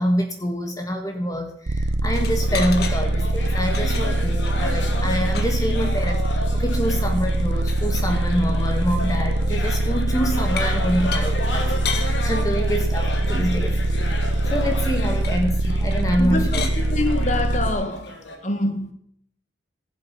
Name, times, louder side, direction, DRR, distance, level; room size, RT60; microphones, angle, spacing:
voice 1, 0.0-16.6, equal, 20° left, 1.3 m, -26 dB
sound 1, 1.7-17.7, right 1 dB, 60° right, 0.8 m, -23 dB
sound 2, 2.1-18.4, left 2 dB, 75° left, 3.2 m, -34 dB
sound 3, 2.1-3.0 3.4-6.1 6.6-6.7 6.9-7.0 7.3-8.2 8.8-9.0 10.6-10.8 11.1-11.2 11.8-12.1 15.2-15.4 15.9-16.1 16.4-16.8 18.0-18.1, left 6 dB, 55° left, 1.7 m, -34 dB
voice 2, 16.2-16.6 16.9-18.2 18.4-18.9, left 2 dB, 40° left, 1.6 m, -25 dB
15.5 x 7.7 x 5.8 m
head